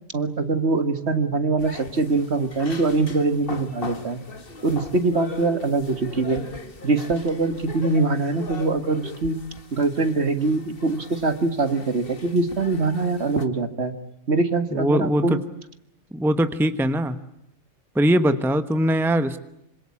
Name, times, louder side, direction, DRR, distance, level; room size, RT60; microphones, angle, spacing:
voice 1, 0.1-4.2 4.6-6.4 6.8-9.4 9.7-13.9 14.3-15.4, right 3 dB, 50° right, 9 dB, 2.0 m, -23 dB
sound 1, 1.6-13.5, left 3 dB, 40° left, 1.9 m, -40 dB
voice 2, 14.7-15.4 16.1-17.2 17.9-19.4, equal, ahead, 10 dB, 1.1 m, -21 dB
26.5 x 26.0 x 8.6 m, 0.81 s
omnidirectional pair, 1.4 m